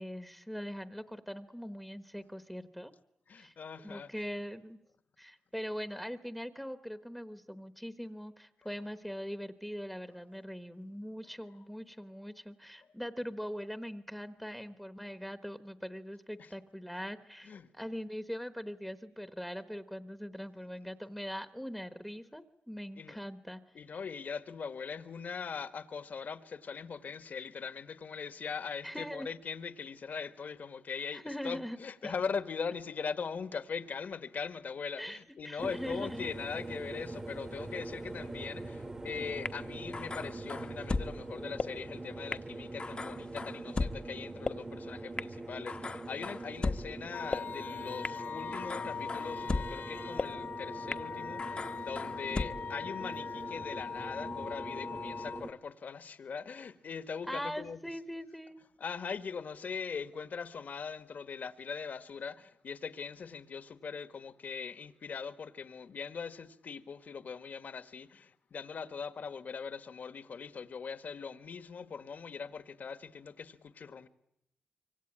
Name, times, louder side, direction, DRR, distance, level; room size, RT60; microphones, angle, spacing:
voice 1, 0.0-2.9 3.4-3.5 3.8-4.8 5.2-23.8 28.8-29.3 31.1-31.8 32.0-32.1 35.0-36.3 57.3-58.6, equal, ahead, 1.1 m, -42 dB
voice 2, 3.3-4.1 16.4-16.5 17.4-17.7 23.0-23.2 23.7-57.8 58.8-74.1, left 6 dB, 55° left, 1.6 m, -41 dB
sound 1, 35.6-55.5, right 2 dB, 20° right, 1.1 m, -43 dB
sound 2, 39.4-39.5 39.9-41.1 41.6-41.7 42.3-42.4 42.8-43.9 44.4-44.5 45.2-45.3 45.7-46.8 47.3-47.4 48.0-48.1 48.5-49.7 50.2-50.3 50.9-51.0 51.4-52.4, left 3 dB, 30° left, 1.0 m, -35 dB
sound 3, 47.1-55.4, left 6 dB, 75° left, 2.9 m, -41 dB
25.5 x 25.5 x 8.9 m
wide cardioid pair, 175°, 3 cm